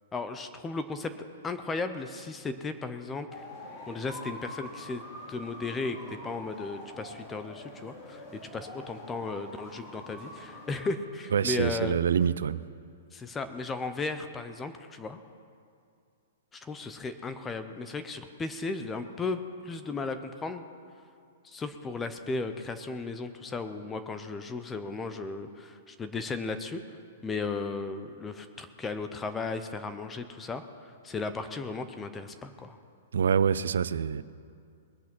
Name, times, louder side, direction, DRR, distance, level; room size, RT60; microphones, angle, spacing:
voice 1, 0.1-3.4 3.9-5.0 5.3-8.2 8.5-12.0 13.1-15.2 16.5-20.6 21.4-26.8 27.2-32.8, left 3 dB, 10° left, 10 dB, 0.5 m, -35 dB
sound 1, 3.3-10.9, left 1 dB, 25° left, 2.5 m, -45 dB
voice 2, 11.3-12.6 33.1-34.2, right 7 dB, 90° right, 16 dB, 0.5 m, -26 dB
21.0 x 8.4 x 6.1 m, 2.4 s
hypercardioid pair, 170°, 0 cm